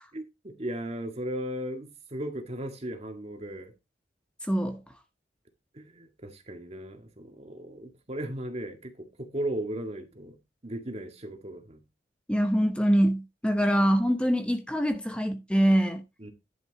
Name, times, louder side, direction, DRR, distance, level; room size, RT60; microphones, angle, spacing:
voice 1, 0.1-3.7 5.7-10.4 10.6-11.8 13.6-13.7 16.2-16.3, right 1 dB, 35° right, 1.9 m, -36 dB
voice 2, 4.5-4.8 12.3-16.0, equal, 5° left, 0.8 m, -24 dB
10.5 x 6.3 x 4.0 m
head